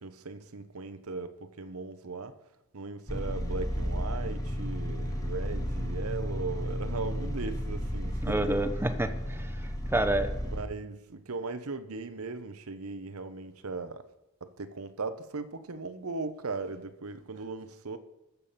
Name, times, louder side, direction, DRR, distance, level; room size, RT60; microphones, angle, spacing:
voice 1, 0.0-2.3 2.7-8.6 10.4-14.0 14.4-18.0, right 3 dB, 80° right, 0.9 m, -38 dB
sound 1, 3.1-10.6, equal, 15° left, 1.3 m, -33 dB
voice 2, 8.2-10.4, right 1 dB, 10° right, 0.8 m, -29 dB
14.0 x 7.0 x 5.7 m
head